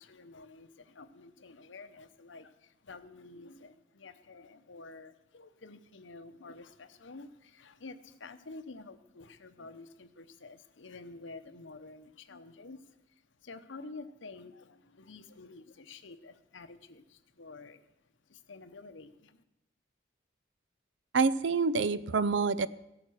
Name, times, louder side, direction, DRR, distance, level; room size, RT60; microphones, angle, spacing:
voice 1, 0.0-17.9 18.3-19.4, left 3 dB, 80° left, 10 dB, 0.9 m, -50 dB
voice 2, 21.1-22.7, right 4 dB, 70° right, 18 dB, 0.5 m, -27 dB
16.0 x 8.7 x 6.5 m, 0.88 s
head